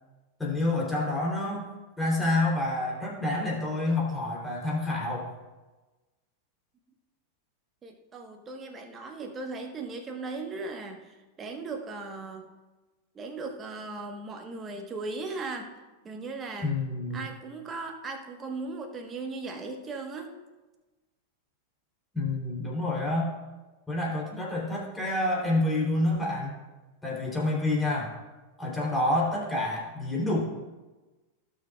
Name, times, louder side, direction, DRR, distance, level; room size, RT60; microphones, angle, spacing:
voice 1, 0.4-1.7 2.0-5.3 16.6-17.2 22.1-23.3 23.9-26.6 27.0-28.1 28.6-30.4, left 2 dB, 10° left, -4 dB, 3.3 m, -28 dB
voice 2, 7.8-12.5 13.1-15.7 16.0-16.8 17.1-20.3, right 3 dB, 25° right, 3 dB, 1.3 m, -37 dB
17.0 x 6.6 x 2.4 m, 1.2 s
figure-of-eight pair, 90°, 0 cm